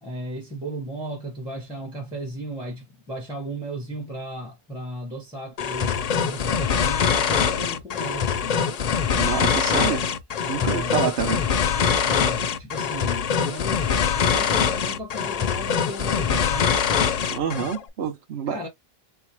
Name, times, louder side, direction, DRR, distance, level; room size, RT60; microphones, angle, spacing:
voice 1, 0.0-8.8 10.6-11.0 12.0-16.7 18.5-18.7, right 1 dB, 5° right, 0.8 m, -35 dB
sound 1, 5.6-17.8, left 7 dB, 55° left, 0.5 m, -23 dB
voice 2, 9.1-10.1 10.5-11.5 17.3-18.7, right 7 dB, 90° right, 1.1 m, -27 dB
3.3 x 2.7 x 2.9 m
omnidirectional pair, 1.0 m